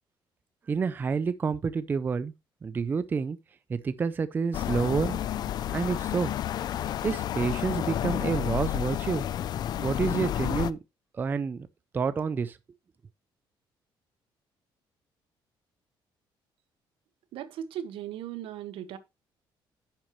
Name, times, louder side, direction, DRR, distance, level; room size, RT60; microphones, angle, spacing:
voice 1, 0.7-2.3 2.6-3.4 3.7-5.2 5.7-6.3 7.0-9.3 9.8-10.8 11.1-11.7 11.9-12.6, right 5 dB, 20° right, 0.4 m, -28 dB
sound 1, 4.5-10.7, left 11 dB, 50° left, 0.4 m, -30 dB
voice 2, 17.3-19.0, right 10 dB, 85° right, 1.2 m, -37 dB
10.0 x 7.3 x 3.0 m
cardioid pair, 175°, 9 cm